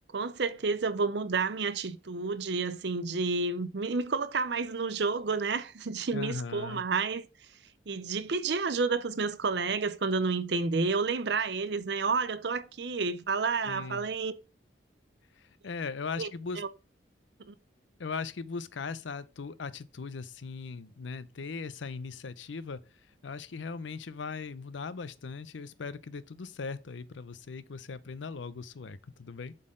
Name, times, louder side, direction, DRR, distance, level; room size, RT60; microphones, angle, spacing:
voice 1, 0.1-7.2 7.9-14.3 16.2-16.3 16.6-16.7 17.4-17.5, right 4 dB, 65° right, 0.6 m, -30 dB
voice 2, 6.1-6.8 13.6-14.1 15.4-16.6 18.0-22.8 23.2-29.5, left 4 dB, 80° left, 0.6 m, -39 dB
7.5 x 4.0 x 3.7 m
head